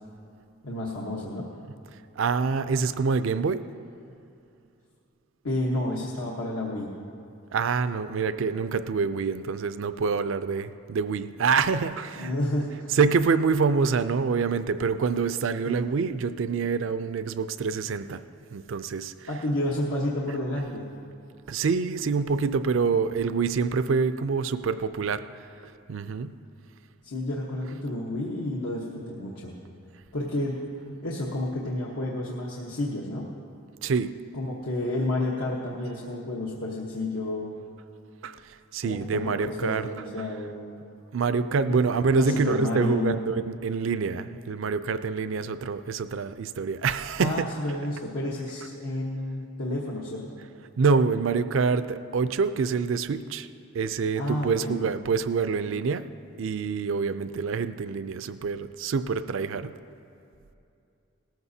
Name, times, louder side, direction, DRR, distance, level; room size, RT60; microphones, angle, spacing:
voice 1, 0.6-1.4 5.4-6.9 12.2-12.9 15.6-15.8 19.3-20.9 27.0-29.5 30.1-30.6 31.0-33.3 34.3-37.6 38.8-40.6 41.7-41.8 42.1-43.1 47.2-50.3 54.1-54.8, left 1 dB, 80° left, -4 dB, 1.2 m, -30 dB
voice 2, 2.2-3.6 7.5-12.4 12.9-18.2 18.5-19.5 21.5-25.2 25.9-26.4 30.8-31.0 33.8-34.1 38.2-40.3 41.1-47.8 48.6-48.7 50.8-53.5 53.7-56.1 56.4-59.7, right 5 dB, 65° right, 12 dB, 0.4 m, -26 dB
18.5 x 14.0 x 2.8 m, 2.6 s
head